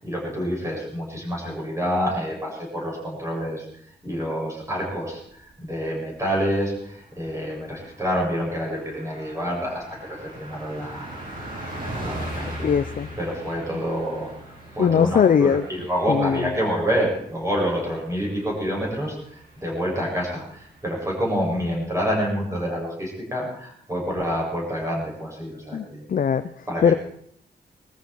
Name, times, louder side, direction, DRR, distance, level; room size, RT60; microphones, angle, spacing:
voice 1, 0.0-3.7 4.0-11.2 12.0-12.7 13.2-14.3 14.7-19.2 19.6-26.0 26.7-27.0, equal, 15° right, -2 dB, 7.1 m, -27 dB
Car passing by, 5.2-5.8 6.2-6.3 6.6-20.9, right 1 dB, 50° right, 8.0 m, -40 dB
voice 2, 12.4-13.1 14.8-15.6 16.1-16.5 25.7-26.9, left 7 dB, 50° left, 11 dB, 0.5 m, -21 dB
21.0 x 13.5 x 4.6 m, 0.66 s
wide cardioid pair, 155°, 18 cm